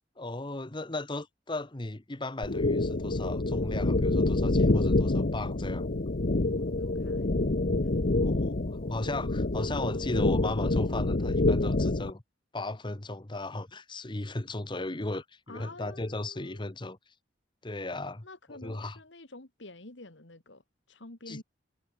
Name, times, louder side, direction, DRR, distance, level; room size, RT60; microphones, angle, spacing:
voice 1, 0.2-5.9 8.2-12.2 12.5-17.0 17.6-18.2 18.6-19.0 21.3-21.4, left 2 dB, 25° left, 1.1 m, -36 dB
sound 1, 2.4-12.1, left 2 dB, 50° left, 0.9 m, -27 dB
voice 2, 6.6-7.3 15.5-16.7 18.2-20.6 20.9-21.4, left 2 dB, 70° left, 2.4 m, -48 dB
head